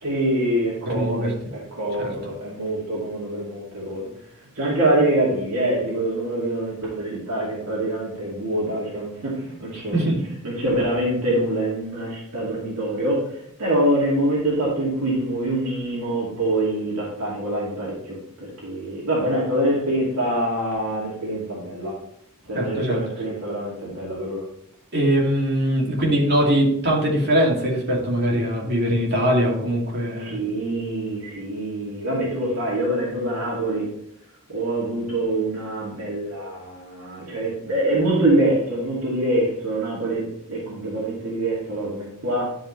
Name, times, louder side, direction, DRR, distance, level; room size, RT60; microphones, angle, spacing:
voice 1, 0.0-4.1 4.6-10.0 10.4-18.2 18.6-22.0 22.5-24.5 30.2-33.9 34.5-42.5, right 1 dB, 80° right, -6 dB, 2.5 m, -25 dB
voice 2, 0.9-1.3 2.0-2.1 9.9-10.2 22.5-23.0 24.9-30.4, equal, 50° right, -3 dB, 2.5 m, -21 dB
11.0 x 5.2 x 3.2 m, 0.73 s
head